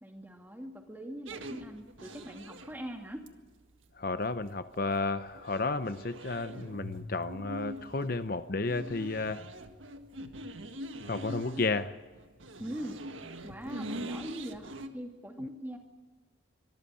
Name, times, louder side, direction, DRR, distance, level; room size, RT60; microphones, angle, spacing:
voice 1, 0.0-3.2 12.6-13.0 13.4-15.8, equal, 10° right, 3 dB, 2.5 m, -42 dB
sound 1, 1.3-14.9, equal, 90° right, 1.7 m, -43 dB
voice 2, 4.0-9.4 11.1-11.9, left 3 dB, 50° left, 11 dB, 0.7 m, -32 dB
24.5 x 14.0 x 9.1 m, 1.3 s
head